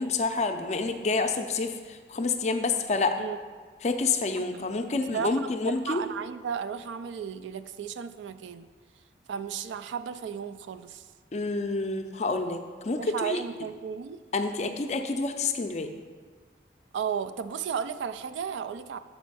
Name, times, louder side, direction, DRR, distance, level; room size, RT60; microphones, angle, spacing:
voice 1, 0.0-3.2 3.8-6.0 11.3-13.4 14.3-15.9, left 3 dB, 40° left, 7 dB, 0.4 m, -28 dB
voice 2, 4.4-8.7 9.3-11.0 13.0-14.2 16.9-19.0, right 7 dB, 90° right, 11 dB, 0.3 m, -34 dB
7.1 x 4.3 x 5.4 m, 1.5 s
head